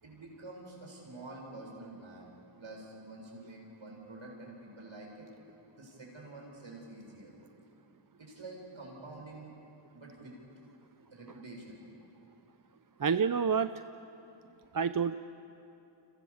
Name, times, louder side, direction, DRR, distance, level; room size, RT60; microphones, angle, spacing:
voice 1, 0.0-2.3 2.6-5.3 5.8-7.3 8.2-9.5 9.9-10.4 11.1-11.8, right 2 dB, 70° right, -1 dB, 7.5 m, -48 dB
voice 2, 13.0-13.7 14.7-15.1, right 6 dB, 40° right, 11 dB, 0.7 m, -28 dB
29.5 x 27.0 x 7.3 m, 2.8 s
wide cardioid pair, 65°, 50 cm